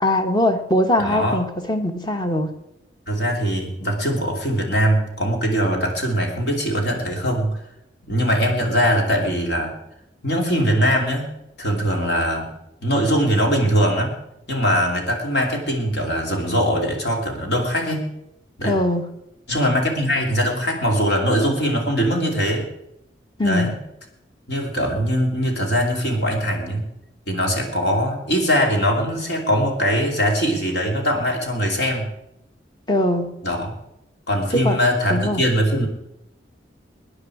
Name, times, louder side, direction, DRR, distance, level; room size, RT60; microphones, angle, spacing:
voice 1, 0.0-2.5 18.6-19.1 23.4-23.7 32.9-33.3 34.6-34.8 35.1-35.4, left 1 dB, 25° left, 7 dB, 1.2 m, -21 dB
voice 2, 1.0-1.4 3.1-7.6 8.1-9.8 10.2-11.3 11.6-12.5 12.8-14.2 14.5-18.1 18.6-18.7 19.5-22.7 23.4-23.8 24.5-26.9 27.3-32.1 33.4-33.8 34.3-35.9, equal, 65° left, 1 dB, 3.1 m, -21 dB
20.0 x 10.0 x 4.9 m, 0.84 s
head